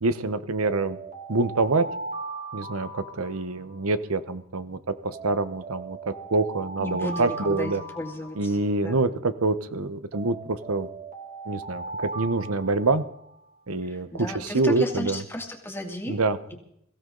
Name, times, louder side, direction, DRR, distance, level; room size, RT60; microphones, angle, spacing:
voice 1, 0.0-1.0 1.3-1.9 2.5-7.8 8.4-10.9 11.5-13.0 13.7-15.2 16.1-16.5, right 3 dB, 85° right, 12 dB, 1.0 m, -26 dB
Alarm, 0.6-3.9 5.1-8.9 10.1-13.4, right 3 dB, 35° right, 2.4 m, -38 dB
voice 2, 6.8-9.0 13.8-16.2 16.5-16.6, left 1 dB, 10° left, 2 dB, 2.3 m, -34 dB
23.0 x 16.0 x 3.9 m, 0.74 s
head